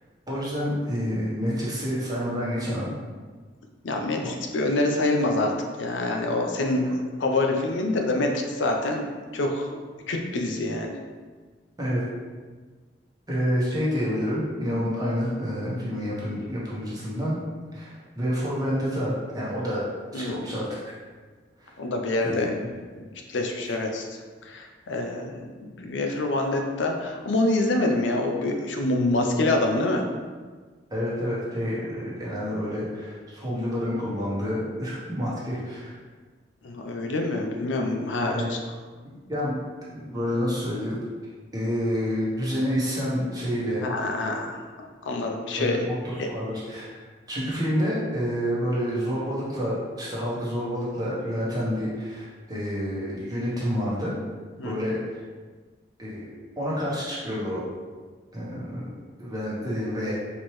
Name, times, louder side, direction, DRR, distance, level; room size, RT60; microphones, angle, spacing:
voice 1, 0.3-2.9 4.2-4.3 6.8-6.9 11.8-12.0 13.3-17.4 17.7-19.9 20.1-20.7 21.6-21.7 22.2-22.5 23.7-23.8 30.9-35.9 38.2-38.5 39.3-39.6 39.9-40.9 41.5-43.8 45.6-54.2 54.6-55.2 56.0-56.3 56.6-57.6 58.3-60.2, equal, 20° right, -7 dB, 1.0 m, -28 dB
voice 2, 3.8-5.5 5.8-6.9 7.2-9.0 9.3-9.8 10.1-10.9 20.1-20.5 21.8-22.5 23.0-24.1 24.4-30.0 36.6-38.6 43.8-45.8 46.2-46.3 54.6-54.8, left 2 dB, 85° left, 2 dB, 0.5 m, -26 dB
4.4 x 3.0 x 3.1 m, 1.4 s
head